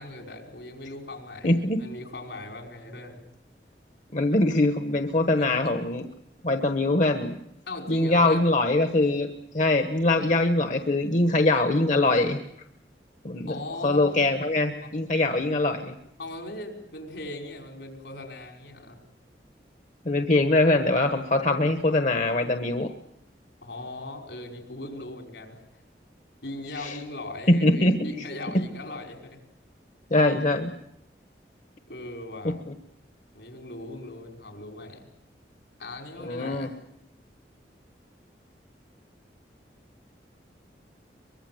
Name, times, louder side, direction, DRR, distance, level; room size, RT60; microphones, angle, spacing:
voice 1, 0.0-3.2 5.3-5.7 7.7-8.5 13.5-14.5 16.2-19.0 23.6-25.6 26.4-29.4 30.1-30.2 31.9-32.6 33.3-35.1 35.8-36.8, left 2 dB, 80° left, 3 dB, 5.5 m, -39 dB
voice 2, 1.4-1.8 4.1-6.1 6.4-7.4 7.9-9.3 9.5-12.4 13.2-13.5 13.8-16.0 20.0-22.9 26.8-27.0 27.5-27.9 30.1-30.7 32.4-32.5 36.2-36.7, left 2 dB, 45° left, 7 dB, 1.2 m, -23 dB
23.5 x 22.5 x 7.9 m, 0.82 s
head